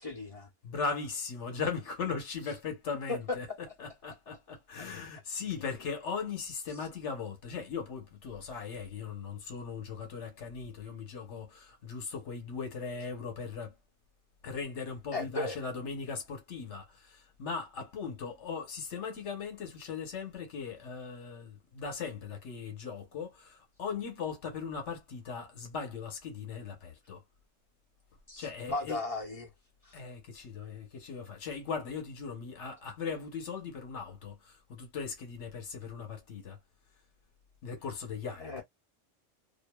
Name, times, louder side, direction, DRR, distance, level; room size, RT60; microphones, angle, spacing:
voice 1, 0.0-0.5 3.1-3.2 15.1-15.6 28.3-29.5 29.8-29.9 38.4-38.6, left 2 dB, 35° left, 0.8 m, -36 dB
voice 2, 0.6-3.5 3.8-13.8 14.4-27.2 28.4-29.0 29.9-36.6 37.6-38.6, left 5 dB, 70° left, 1.2 m, -39 dB
2.7 x 2.2 x 2.2 m
omnidirectional pair, 1.3 m